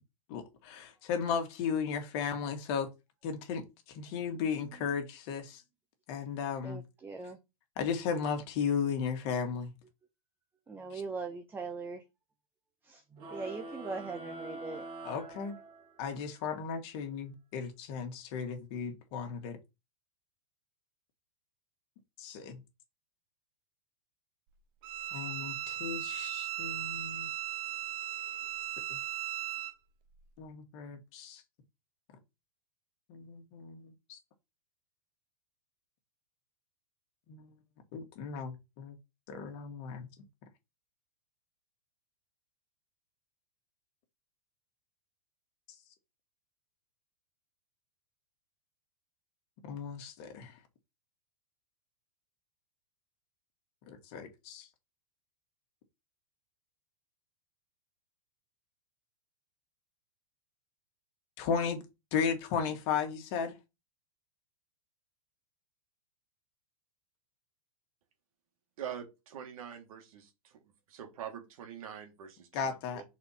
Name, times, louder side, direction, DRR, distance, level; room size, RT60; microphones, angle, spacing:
voice 1, 0.3-2.9 3.2-3.6 3.9-5.6 6.1-6.8 7.8-9.7 10.9-11.0 15.0-15.6 16.0-19.6 22.2-22.6 25.1-27.3 28.9-29.0 30.4-31.4 33.1-34.2 37.3-37.5 37.9-38.9 39.3-40.1 49.6-50.5 53.9-54.7 61.4-61.8 62.1-63.6 72.5-73.0, left 6 dB, 50° left, 1.9 m, -35 dB
voice 2, 6.6-7.4 10.7-12.0 12.9-14.8, right 4 dB, 10° right, 0.6 m, -40 dB
sound 1, 13.2-16.1, right 2 dB, 25° right, 2.2 m, -45 dB
Bowed string instrument, 24.8-29.7, right 12 dB, 40° right, 0.9 m, -37 dB
voice 3, 68.8-70.6 70.9-73.0, right 9 dB, 65° right, 2.1 m, -44 dB
6.0 x 4.4 x 4.3 m
supercardioid pair, 145°, 19 cm